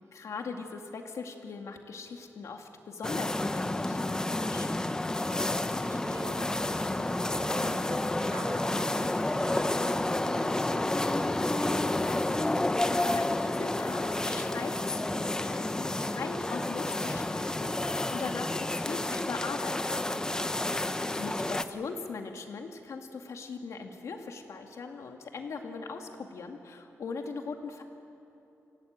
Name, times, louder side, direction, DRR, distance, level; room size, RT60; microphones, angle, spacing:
voice 1, 0.1-4.8 12.4-20.0 21.2-27.8, left 4 dB, 70° left, 4 dB, 2.2 m, -40 dB
sound 1, 3.0-21.6, left 2 dB, 15° left, 0.7 m, -30 dB
voice 2, 5.1-11.8 20.1-20.6, right 2 dB, 65° right, 3 dB, 4.3 m, -46 dB
26.5 x 17.5 x 9.0 m, 2.9 s
wide cardioid pair, 165°, 5 cm